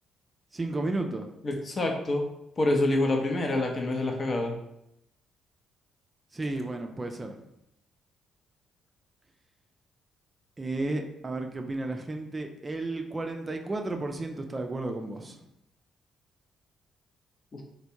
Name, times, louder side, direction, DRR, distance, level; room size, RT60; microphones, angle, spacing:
voice 1, 0.5-1.3 6.3-7.4 10.6-15.4, right 2 dB, 25° right, 4 dB, 0.4 m, -33 dB
voice 2, 1.4-2.2 2.6-4.6 17.5-17.6, left 2 dB, 40° left, 2 dB, 0.6 m, -27 dB
3.2 x 2.2 x 2.7 m, 0.82 s
hypercardioid pair, 45°, 0 cm